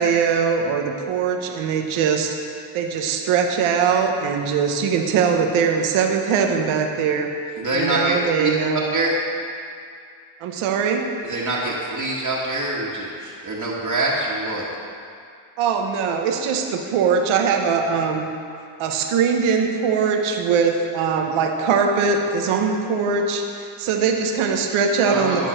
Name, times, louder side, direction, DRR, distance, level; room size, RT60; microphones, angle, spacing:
voice 1, 0.0-2.3 2.7-7.3 7.7-8.8 10.4-11.1 15.6-18.3 18.8-23.4 23.8-25.5, right 6 dB, 85° right, 3 dB, 1.0 m, -21 dB
voice 2, 7.6-8.5 8.9-9.1 11.2-14.6 25.0-25.5, right 2 dB, 40° right, -5 dB, 1.7 m, -24 dB
12.0 x 4.6 x 6.3 m, 2.3 s
supercardioid pair, 70°, 48 cm